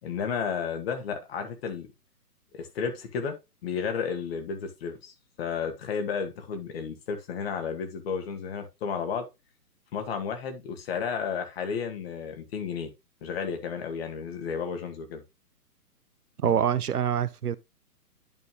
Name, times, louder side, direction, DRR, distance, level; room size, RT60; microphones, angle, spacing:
voice 1, 0.0-1.9 2.5-3.4 3.6-9.3 9.9-12.9 13.2-15.2 16.4-16.5, left 6 dB, 40° left, 1.9 m, -32 dB
voice 2, 16.4-17.6, right 9 dB, 75° right, 0.7 m, -25 dB
11.0 x 4.4 x 3.0 m
figure-of-eight pair, 135°, 47 cm